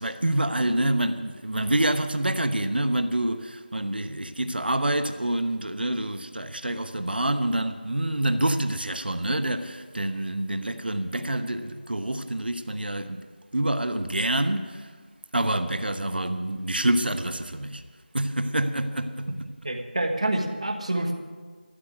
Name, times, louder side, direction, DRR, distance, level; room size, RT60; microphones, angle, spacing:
voice 1, 0.0-13.2 13.5-14.9 15.3-17.8 18.1-19.3, right 1 dB, 75° right, 1.1 m, -27 dB
voice 2, 19.6-21.1, right 1 dB, 40° right, 1.5 m, -27 dB
14.0 x 7.8 x 9.1 m
figure-of-eight pair, 180°, 5 cm